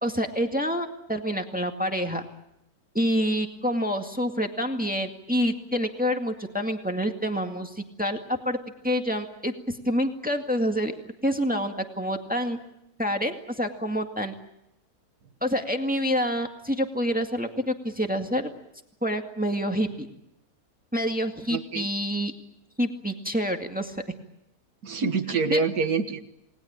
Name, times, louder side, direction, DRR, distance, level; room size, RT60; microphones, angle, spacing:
voice 1, 0.0-2.2 2.9-8.6 8.8-10.9 11.2-12.6 13.0-14.3 15.4-18.5 19.0-20.1 20.9-22.3 22.8-24.0 25.5-25.6, equal, 5° right, 4 dB, 2.0 m, -27 dB
voice 2, 21.5-21.9 24.8-26.3, right 4 dB, 80° right, 7 dB, 2.1 m, -26 dB
29.0 x 20.0 x 8.9 m, 0.84 s
omnidirectional pair, 1.6 m